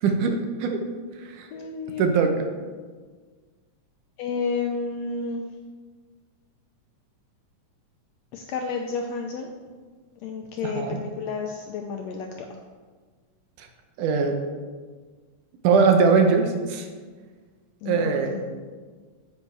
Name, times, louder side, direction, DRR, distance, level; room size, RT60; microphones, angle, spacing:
voice 1, 0.0-0.8 1.2-1.5 2.0-2.4 10.6-11.0 13.6-13.7 14.0-14.4 15.6-16.9 17.9-18.4, right 5 dB, 80° right, 4 dB, 2.2 m, -21 dB
voice 2, 1.5-2.1 4.2-5.5 8.3-9.5 10.2-12.6 17.8-18.4, left 4 dB, 85° left, 3 dB, 1.5 m, -31 dB
9.6 x 8.4 x 3.3 m, 1.5 s
omnidirectional pair, 3.7 m